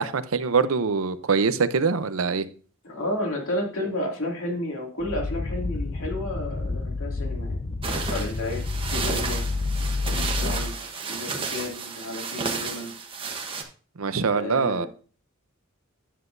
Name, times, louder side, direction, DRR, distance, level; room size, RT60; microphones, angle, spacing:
voice 1, 0.0-2.5 14.0-14.9, right 5 dB, 80° right, 0.7 m, -23 dB
voice 2, 2.8-7.6 7.8-8.6 8.9-9.4 10.0-10.7 11.1-12.9 14.3-14.9, left 1 dB, 70° left, 2.5 m, -32 dB
sound 1, 5.0-10.8, left 3 dB, 30° left, 0.4 m, -29 dB
sound 2, 7.8-13.6, right 4 dB, 25° right, 1.1 m, -32 dB
10.0 x 7.7 x 2.6 m
head